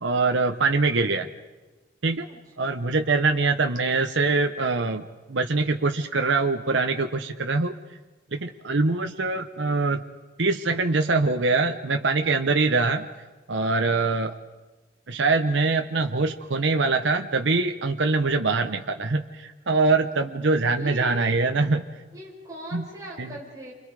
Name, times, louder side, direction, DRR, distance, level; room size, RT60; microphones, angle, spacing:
voice 1, 0.0-1.3 2.0-2.3 2.6-7.7 8.3-10.0 10.4-13.0 13.5-14.3 15.1-21.8 22.7-22.8 23.2-23.3, right 3 dB, 75° right, 5 dB, 1.0 m, -23 dB
voice 2, 2.2-2.8 20.7-21.3 22.1-23.7, equal, 20° right, -4 dB, 6.1 m, -40 dB
29.5 x 25.5 x 4.9 m, 1.2 s
head